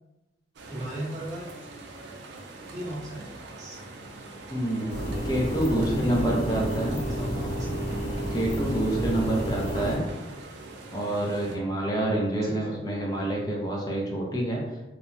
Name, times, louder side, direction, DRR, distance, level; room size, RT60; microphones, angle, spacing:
voice 1, 0.6-1.5 2.7-3.8 5.7-6.6 7.1-7.8 9.7-9.9 12.4-12.7, right 1 dB, 20° right, -8 dB, 0.7 m, -37 dB
sound 1, 0.6-11.6, right 2 dB, 85° right, 0.5 m, -43 dB
voice 2, 4.5-7.0 8.3-10.0 10.9-14.8, right 1 dB, 20° left, -2 dB, 0.5 m, -27 dB
sound 2, 4.9-10.0, equal, 75° left, 0.7 m, -30 dB
2.9 x 2.1 x 2.5 m, 1.0 s
head